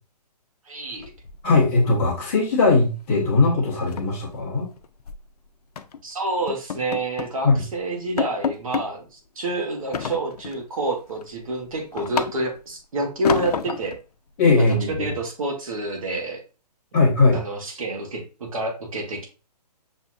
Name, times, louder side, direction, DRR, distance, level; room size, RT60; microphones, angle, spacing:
voice 1, 0.7-1.1 6.0-14.0 14.9-16.4 17.3-19.3, right 2 dB, 55° right, 2 dB, 1.3 m, -28 dB
sound 1, 1.0-1.8 2.1-2.4 2.7-2.9 3.2-3.3 3.7-5.2 5.8-6.0 6.5-7.4 7.8-7.9 8.2-8.9 9.9-10.7 11.1-12.7 13.2-14.0, left 7 dB, 65° left, 0.5 m, -30 dB
voice 2, 1.4-4.7 7.4-7.6 14.4-15.0 16.9-17.4, left 3 dB, 20° left, -5 dB, 1.0 m, -19 dB
6.3 x 2.7 x 2.4 m, 0.33 s
hypercardioid pair, 170°, 21 cm